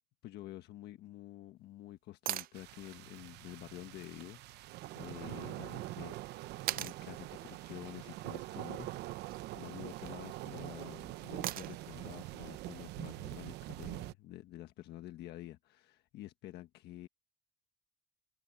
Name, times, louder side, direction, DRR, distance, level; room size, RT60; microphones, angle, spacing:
voice 1, 0.2-17.1, left 15 dB, 80° left, 1.3 m, -49 dB
sound 1, 2.3-2.6 4.8-4.9 6.7-7.0 9.0-9.4 11.4-11.9 14.0-14.1, right 14 dB, 60° right, 0.5 m, -38 dB
sound 2, 2.5-14.1, right 17 dB, 85° right, 0.9 m, -44 dB
open air
cardioid pair, 110°, 17 cm